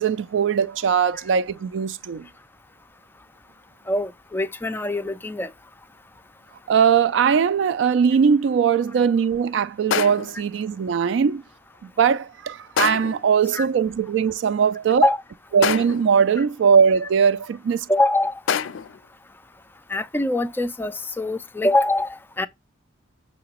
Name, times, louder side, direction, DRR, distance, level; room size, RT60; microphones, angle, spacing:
voice 1, 0.0-2.3 6.7-11.4 11.8-15.1 15.5-17.9, right 7 dB, 70° right, 0.3 m, -20 dB
voice 2, 3.9-5.5 13.5-13.7 15.0-15.2 17.9-18.4 19.9-22.5, left 2 dB, 10° left, 0.3 m, -23 dB
sound 1, 9.9-10.4 12.8-13.3 15.6-16.1 18.5-19.0, left 7 dB, 85° left, 0.4 m, -26 dB
6.0 x 2.9 x 2.9 m
head